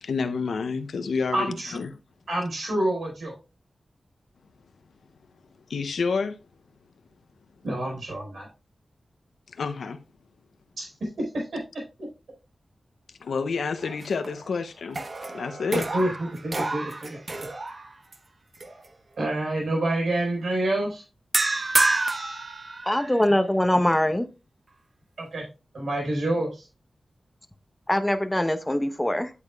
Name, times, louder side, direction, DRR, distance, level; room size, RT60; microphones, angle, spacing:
voice 1, 0.0-1.9 5.7-6.4 9.5-10.0 13.2-15.0 15.3-15.9, left 5 dB, 90° left, 0.6 m, -29 dB
voice 2, 1.3-1.8 2.3-3.3 7.6-8.5 10.8-10.9 11.3-11.6 15.7-16.1 16.4-17.5 19.2-21.0 25.2-25.4 25.7-26.7, right 1 dB, 80° right, 4.5 m, -27 dB
sound 1, 13.8-14.5 14.9-18.2 18.6-18.9 21.3-23.3, right 2 dB, 45° right, 0.9 m, -29 dB
voice 3, 22.9-24.3 27.9-29.3, left 1 dB, 10° left, 0.8 m, -23 dB
8.4 x 8.3 x 2.3 m
wide cardioid pair, 75°, 0 cm